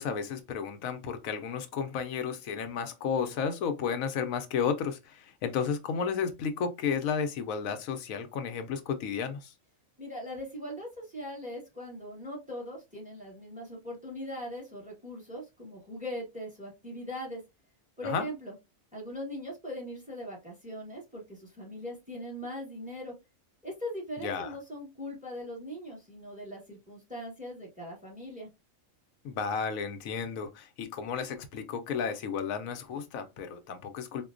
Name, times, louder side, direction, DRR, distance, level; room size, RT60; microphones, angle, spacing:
voice 1, 0.0-9.5 18.0-18.3 24.2-24.6 29.2-34.3, left 6 dB, 85° left, 1.0 m, -33 dB
voice 2, 10.0-17.4 18.0-18.5 18.9-23.1 23.6-28.5, equal, 5° right, 1.0 m, -40 dB
4.1 x 2.2 x 2.4 m
omnidirectional pair, 1.4 m